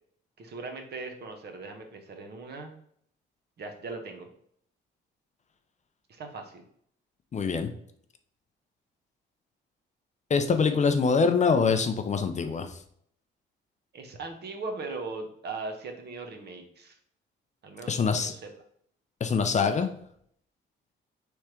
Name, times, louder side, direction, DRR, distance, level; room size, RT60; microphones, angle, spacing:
voice 1, 0.4-2.7 3.6-4.3 6.1-6.6 13.9-17.0 17.6-18.5, right 3 dB, 55° right, 4 dB, 1.0 m, -39 dB
voice 2, 7.3-7.7 10.3-12.7 17.9-18.3 19.2-19.9, left 5 dB, 35° left, 8 dB, 0.5 m, -24 dB
3.5 x 3.2 x 4.4 m, 0.65 s
cardioid pair, 90°, 20 cm